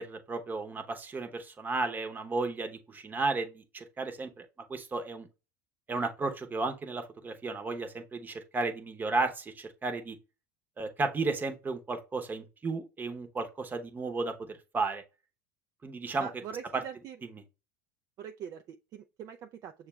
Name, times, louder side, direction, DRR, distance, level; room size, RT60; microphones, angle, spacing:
voice 1, 0.0-4.4 4.7-5.3 5.9-10.2 10.8-15.0 15.8-16.3 16.7-16.8 17.2-17.4, right 3 dB, 20° right, 0.9 m, -33 dB
voice 2, 16.2-17.2 18.2-19.4 19.6-19.7, right 8 dB, 45° right, 0.4 m, -42 dB
6.5 x 2.4 x 3.1 m
hypercardioid pair, 95°, 8 cm